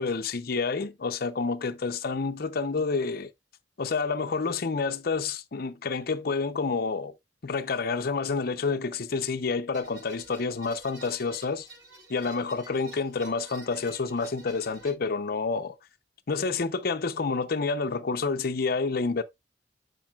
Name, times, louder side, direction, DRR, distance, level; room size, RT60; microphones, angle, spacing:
voice 1, 0.0-3.3 3.8-7.1 7.4-11.7 12.1-15.8 16.3-19.2, left 4 dB, 55° left, 0.6 m, -29 dB
sound 1, 9.7-14.9, right 2 dB, 85° right, 3.4 m, -50 dB
10.5 x 5.3 x 2.3 m
head